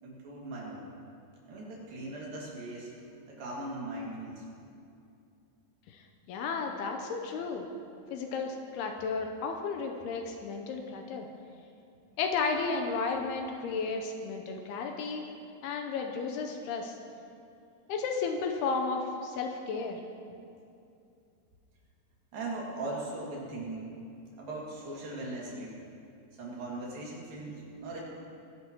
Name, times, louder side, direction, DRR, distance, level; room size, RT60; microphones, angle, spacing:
voice 1, 0.0-0.9 1.4-2.9 3.3-4.5 22.3-23.9 24.4-25.8 26.4-28.0, right 2 dB, 60° right, -4 dB, 3.7 m, -39 dB
voice 2, 6.3-7.7 8.1-11.3 12.2-15.2 15.6-17.0 17.9-20.0, left 4 dB, 80° left, 3 dB, 2.6 m, -33 dB
22.5 x 11.0 x 3.0 m, 2.5 s
omnidirectional pair, 4.9 m